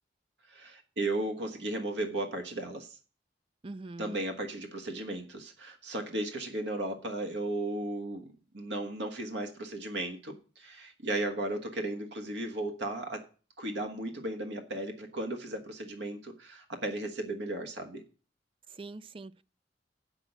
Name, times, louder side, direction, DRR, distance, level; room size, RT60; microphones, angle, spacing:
voice 1, 0.5-3.0 4.0-8.3 8.5-13.2 13.6-18.0, right 2 dB, 75° right, 1.4 m, -35 dB
voice 2, 3.6-4.2 18.7-19.4, right 2 dB, 30° right, 0.5 m, -43 dB
7.5 x 6.2 x 7.9 m
head